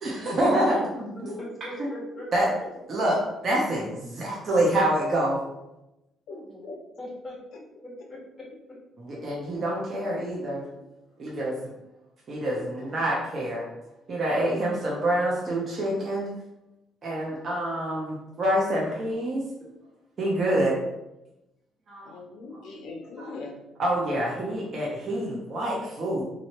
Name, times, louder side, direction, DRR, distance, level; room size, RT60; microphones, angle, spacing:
voice 1, 0.0-0.8 1.8-1.9 2.3-2.5 2.9-3.2 3.4-5.4 9.0-10.6 11.2-11.5 12.3-13.6 14.1-16.3 17.0-19.4 20.2-20.7 21.9-22.1 23.2-23.3 23.8-26.2, right 1 dB, 35° right, -4 dB, 0.9 m, -26 dB
voice 2, 0.6-2.5 7.0-7.4 8.1-8.2, equal, 10° left, -5 dB, 1.7 m, -39 dB
voice 3, 2.4-2.7 6.3-6.8 7.5-7.6 10.3-10.4 10.8-10.9 12.5-13.0 20.4-20.8 22.0-23.6, left 3 dB, 65° left, 1 dB, 0.9 m, -42 dB
3.7 x 3.2 x 4.4 m, 0.93 s
cardioid pair, 160°, 0 cm